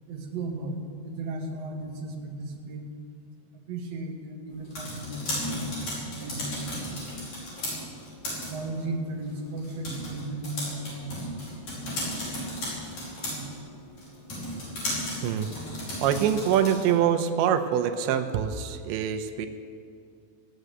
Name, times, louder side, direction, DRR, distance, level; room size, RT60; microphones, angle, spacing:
voice 1, 0.1-2.9 3.7-7.1 8.4-11.6 11.8-12.0 12.4-12.5 12.9-13.0 13.4-13.5, right 2 dB, 60° right, 1 dB, 1.7 m, -36 dB
sound 1, 4.5-17.0, left 1 dB, 40° left, 6.0 m, -35 dB
voice 2, 16.0-19.5, right 9 dB, 85° right, 6 dB, 3.1 m, -24 dB
16.5 x 10.0 x 8.1 m, 2.2 s
omnidirectional pair, 5.2 m